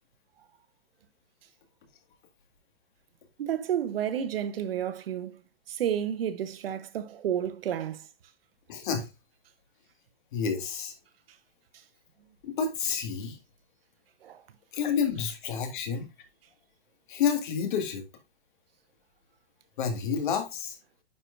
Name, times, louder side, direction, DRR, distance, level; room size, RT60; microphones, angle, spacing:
voice 1, 3.4-5.4 5.7-8.0 14.2-14.4, right 9 dB, 60° right, 1.0 m, -31 dB
voice 2, 8.7-9.1 10.3-10.9 12.4-13.4 14.7-16.1 17.1-18.0 19.8-20.8, left 6 dB, 50° left, 1.8 m, -29 dB
10.0 x 4.6 x 2.5 m
hypercardioid pair, 165°, 32 cm